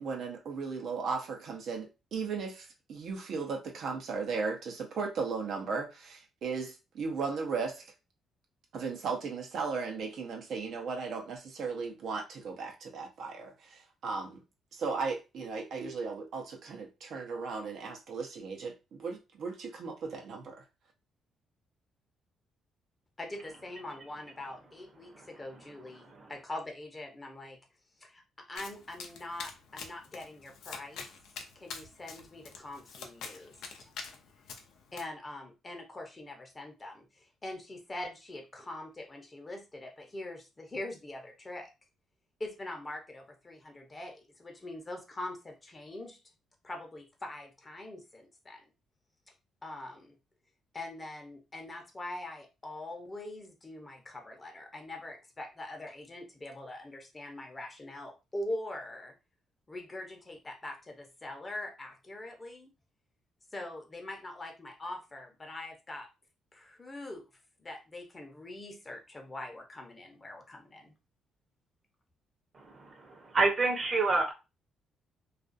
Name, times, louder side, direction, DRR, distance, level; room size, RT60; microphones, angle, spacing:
voice 1, 0.0-7.9 8.7-14.4 14.7-20.6, right 4 dB, 70° right, 0.7 m, -36 dB
voice 2, 23.2-27.6 28.0-31.1 31.6-33.5 33.8-33.9 34.9-41.7 42.4-46.2 46.6-48.6 49.6-50.2 50.7-59.1 59.7-62.7 63.5-66.1 66.5-67.3 67.6-70.9, left 1 dB, 25° left, 0.7 m, -43 dB
Domestic sounds home sounds, 28.6-35.0, left 5 dB, 80° left, 0.5 m, -46 dB
voice 3, 72.5-74.3, right 3 dB, 40° right, 0.8 m, -29 dB
2.4 x 2.3 x 2.5 m
cardioid pair, 90°, 0 cm